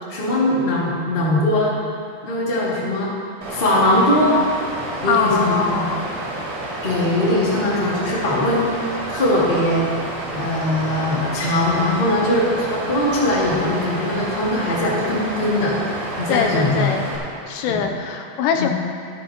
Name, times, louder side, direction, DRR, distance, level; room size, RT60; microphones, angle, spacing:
voice 1, 0.1-1.7 2.2-3.1 3.5-4.3 5.0-5.9 6.8-9.9 10.3-15.7 16.2-16.9 17.7-17.8 18.6-18.7, left 1 dB, 30° left, -6 dB, 0.9 m, -20 dB
Water, 3.4-17.2, right 1 dB, 45° right, 3.3 m, -30 dB
voice 2, 5.1-6.1 16.3-17.0 17.5-18.7, left 6 dB, 80° left, 4 dB, 2.7 m, -22 dB
14.0 x 13.5 x 2.9 m, 2.4 s
omnidirectional pair, 5.0 m